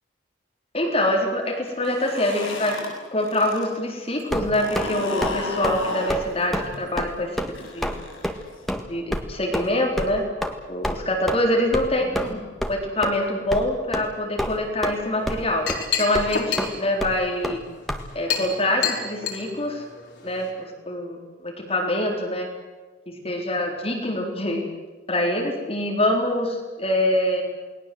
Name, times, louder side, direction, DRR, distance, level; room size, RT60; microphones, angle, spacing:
voice 1, 0.7-2.8 3.1-7.4 7.7-7.9 8.9-10.2 10.7-15.7 16.0-17.6 18.1-19.8 20.2-20.5 20.8-22.5 23.1-24.7 25.1-27.4, left 1 dB, 30° left, 0 dB, 4.0 m, -25 dB
sound 1, 1.7-3.7 4.0-8.8, left 2 dB, 85° left, 8.0 m, -33 dB
sound 2, 4.3-4.9 5.2-5.4 5.6-5.8 6.1-6.3 6.5-6.7 7.0-7.1 7.4-7.5 7.8-8.0 8.2-8.3 8.7-8.8 9.1-9.2 9.5-9.7 10.0-10.1 10.4-10.5 10.8-11.0 11.3-11.4 11.7-11.9 12.1-12.3 12.6-12.7 13.0-13.1 13.5-13.6 13.9-14.1 14.4-15.0 15.3-15.4 15.7-15.8 16.1-16.3 16.6-16.7 17.0-17.1 17.4-17.6 17.9-18.0, equal, ahead, 1.7 m, -27 dB
Chink clink, 15.2-20.5, left 6 dB, 60° left, 4.5 m, -31 dB
28.5 x 20.0 x 7.9 m, 1.3 s
head